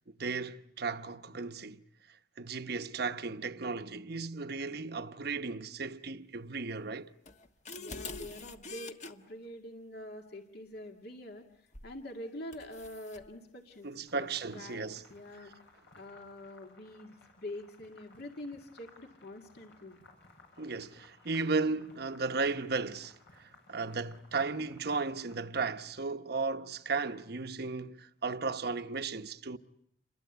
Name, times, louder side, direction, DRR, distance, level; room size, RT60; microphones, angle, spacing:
voice 1, 0.2-7.1 13.8-15.0 20.6-29.6, right 4 dB, 60° right, 1.0 m, -35 dB
sound 1, 7.3-9.1 11.7-12.0 12.5-13.3, left 3 dB, 40° left, 1.4 m, -45 dB
voice 2, 7.8-11.4 11.8-14.3 14.5-15.5 15.9-20.0, left 1 dB, 60° left, 2.3 m, -45 dB
sound 2, 14.1-25.3, left 3 dB, 85° left, 8.0 m, -60 dB
29.0 x 22.5 x 8.1 m
head